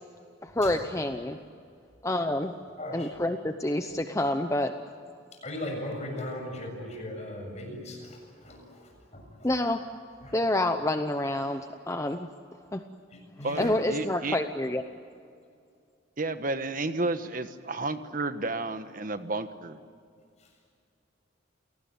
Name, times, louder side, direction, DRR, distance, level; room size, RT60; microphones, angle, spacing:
voice 1, 0.4-1.4 2.0-2.5 2.9-4.7 9.4-9.8 10.3-11.6 11.9-12.3 12.7-12.8 13.6-14.8, left 1 dB, 15° left, 7 dB, 0.8 m, -28 dB
voice 2, 2.8-3.1 5.4-9.5 10.2-10.4 13.1-13.8 20.4-20.5, left 1 dB, 35° left, 2 dB, 7.3 m, -38 dB
voice 3, 13.4-14.4 16.2-19.8, right 2 dB, 45° right, 10 dB, 1.3 m, -32 dB
29.5 x 19.0 x 9.3 m, 2.3 s
head